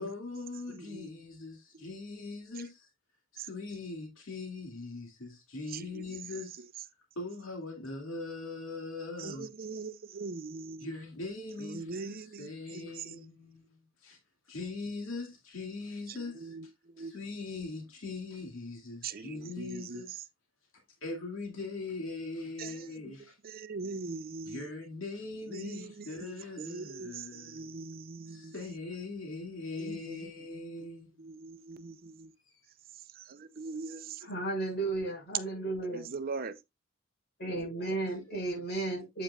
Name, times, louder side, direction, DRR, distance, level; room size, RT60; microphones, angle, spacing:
voice 1, 0.0-2.9 3.3-6.6 7.2-9.5 10.8-14.2 14.5-16.7 17.0-20.3 21.0-23.4 24.5-27.7 28.3-31.2 32.5-32.6, left 3 dB, 80° left, 2.3 m, -41 dB
voice 2, 0.8-1.1 3.4-3.5 5.7-6.1 9.2-10.9 11.6-13.1 16.1-16.7 17.0-17.1 19.0-20.1 22.6-23.2 23.4-24.7 25.5-28.5 29.8-30.2 30.8-30.9 31.2-32.3 33.2-34.3 35.9-36.6, right 4 dB, 45° right, 0.6 m, -41 dB
voice 3, 34.2-36.1 37.4-39.2, right 2 dB, 55° left, 6.5 m, -34 dB
8.6 x 8.4 x 2.4 m
head